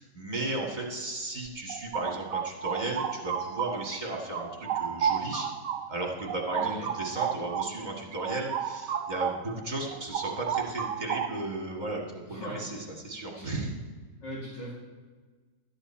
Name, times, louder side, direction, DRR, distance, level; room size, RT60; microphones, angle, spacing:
voice 1, 0.0-4.5 4.7-5.5 5.9-13.8, right 2 dB, 25° right, -1 dB, 1.8 m, -35 dB
sound 1, 1.5-4.0 4.3-9.5 9.8-11.6, right 8 dB, 75° right, 1.3 m, -32 dB
voice 2, 12.2-12.6 13.3-13.5 14.2-14.7, equal, 80° left, -6 dB, 2.8 m, -39 dB
13.0 x 9.7 x 4.4 m, 1.4 s
omnidirectional pair, 1.9 m